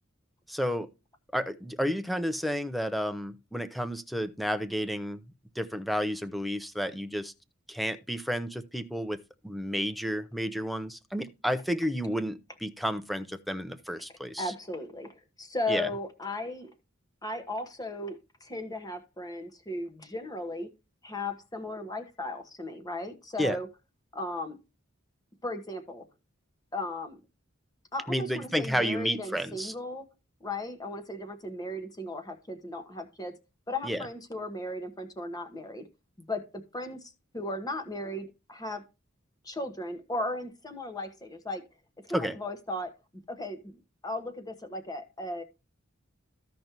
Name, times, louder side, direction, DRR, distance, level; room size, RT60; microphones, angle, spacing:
voice 1, 0.5-0.9 1.3-5.2 5.6-7.3 7.7-14.5 15.7-15.9 23.4-23.6 28.1-29.7 33.8-34.0 42.1-42.4, equal, ahead, 0.6 m, -31 dB
voice 2, 14.4-16.7 17.2-20.7 21.0-23.7 24.1-24.6 25.4-26.0 26.7-27.2 27.9-30.0 30.4-33.3 33.7-35.8 36.3-36.4 36.7-38.8 39.4-41.6 42.1-42.9 43.3-45.4, left 1 dB, 20° left, 1.2 m, -36 dB
14.5 x 5.3 x 2.9 m
head